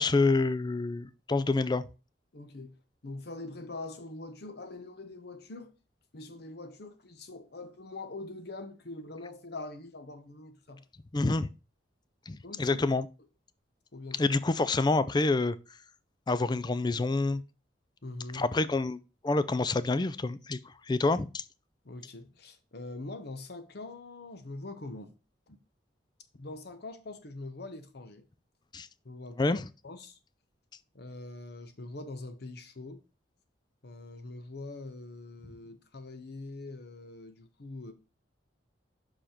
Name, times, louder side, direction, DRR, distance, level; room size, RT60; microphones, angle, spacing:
voice 1, 0.0-1.8 11.1-11.5 12.3-13.1 14.2-15.6 16.3-17.4 18.3-19.0 19.2-20.6 20.9-21.4 28.7-28.9 29.4-29.6, left 3 dB, 25° left, 0.4 m, -27 dB
voice 2, 2.3-2.8 3.0-5.7 6.1-10.8 12.4-12.8 13.9-14.3 18.0-18.5 21.8-25.1 25.5-25.6 26.3-28.2 29.0-30.2 30.9-33.0 33.8-37.9, left 2 dB, 60° left, 0.8 m, -43 dB
5.9 x 4.9 x 5.0 m
head